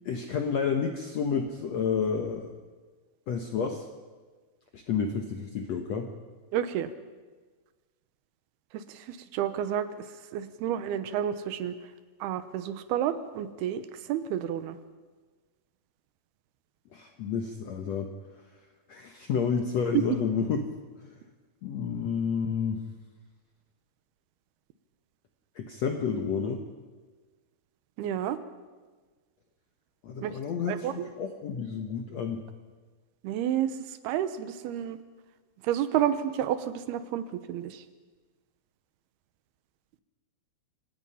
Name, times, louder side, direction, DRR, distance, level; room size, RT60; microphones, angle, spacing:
voice 1, 0.0-2.5 3.3-3.8 4.7-6.1 16.9-18.1 18.9-20.7 21.0-21.1 21.6-22.8 25.5-26.6 30.0-32.4, left 6 dB, 75° left, 4 dB, 1.6 m, -30 dB
voice 2, 6.5-6.9 8.7-10.1 10.3-11.8 12.2-13.8 14.1-14.8 28.0-28.4 30.2-30.4 30.7-31.1 33.2-33.8 34.0-35.0 35.6-37.8, right 10 dB, 80° right, 12 dB, 2.9 m, -30 dB
27.5 x 17.0 x 5.7 m, 1.4 s
omnidirectional pair, 4.6 m